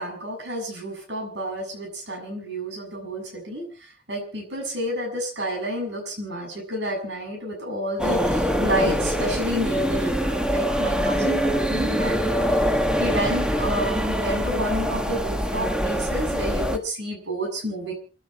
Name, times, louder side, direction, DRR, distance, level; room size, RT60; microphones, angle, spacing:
voice 1, 0.0-12.5 13.0-17.9, equal, 75° right, 1 dB, 7.1 m, -29 dB
sound 1, 8.0-16.8, equal, 5° right, 1.3 m, -24 dB
29.5 x 10.0 x 4.4 m, 0.38 s
head